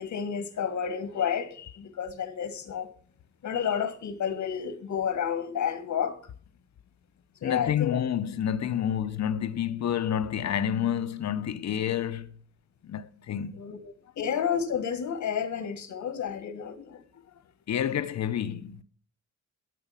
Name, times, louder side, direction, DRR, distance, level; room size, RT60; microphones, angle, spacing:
voice 1, 0.0-2.9 3.4-6.2 7.4-8.0 13.5-17.0, left 8 dB, 85° left, 1.7 m, -31 dB
voice 2, 7.4-12.4 12.8-13.8 16.0-16.1 17.7-18.8, left 9 dB, 65° left, 1.0 m, -29 dB
12.5 x 8.6 x 5.8 m
wide cardioid pair, 135°, 29 cm